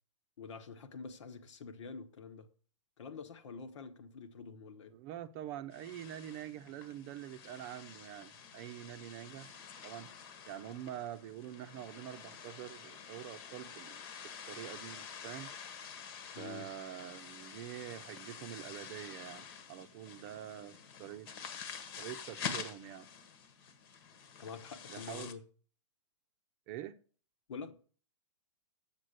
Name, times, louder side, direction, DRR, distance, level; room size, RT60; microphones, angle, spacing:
voice 1, 0.4-2.5 3.0-5.0 16.3-16.7 24.4-25.4 27.5-27.7, left 5 dB, 65° left, 1.4 m, -46 dB
voice 2, 4.9-9.5 9.8-10.1 10.5-14.0 14.5-15.5 16.4-21.3 22.0-23.1 24.9-25.3 26.7-27.0, right 11 dB, 35° right, 0.7 m, -45 dB
sound 1, 5.7-25.3, left 6 dB, 45° left, 1.4 m, -48 dB
8.7 x 7.4 x 6.6 m
hypercardioid pair, 125°, 17 cm